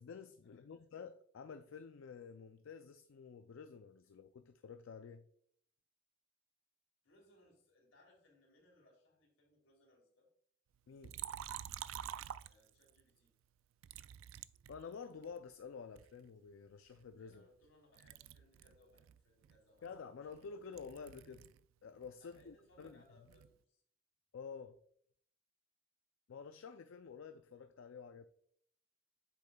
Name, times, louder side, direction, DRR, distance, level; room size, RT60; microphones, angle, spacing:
voice 1, 0.0-5.3 10.9-11.2 14.7-17.4 19.8-21.5 21.8-23.0 24.3-24.8 26.3-28.3, left 5 dB, 70° left, 0.4 m, -50 dB
voice 2, 0.6-0.9 7.0-10.3 12.4-13.3 16.8-16.9 17.2-20.4 22.2-23.8, left 1 dB, 90° left, 2.9 m, -69 dB
Liquid, 11.0-13.0 13.8-15.4 16.0-17.7 18.0-21.6 21.9-23.6, right 10 dB, 80° right, 0.3 m, -49 dB
8.1 x 6.7 x 2.3 m
head